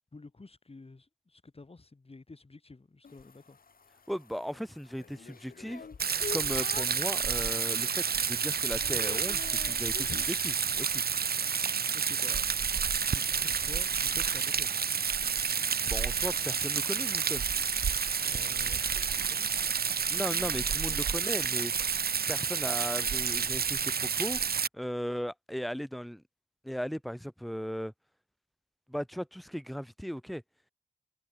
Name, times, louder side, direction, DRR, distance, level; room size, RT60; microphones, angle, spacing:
voice 1, 0.1-3.6 11.9-12.5 13.1-14.7 18.2-20.0 20.3-21.0, left 3 dB, 40° left, 4.8 m, -50 dB
sound 1, 3.0-7.1 7.6-8.0 8.3-10.4 12.9-21.3, left 5 dB, 70° left, 2.9 m, -49 dB
voice 2, 4.1-5.9 6.3-11.0 15.8-17.5 20.1-21.7 22.3-24.4 24.7-26.2 26.6-27.9 28.9-30.4, equal, ahead, 1.7 m, -37 dB
Rain, 6.0-24.7, right 6 dB, 80° right, 1.2 m, -30 dB
wide cardioid pair, 85°, 16 cm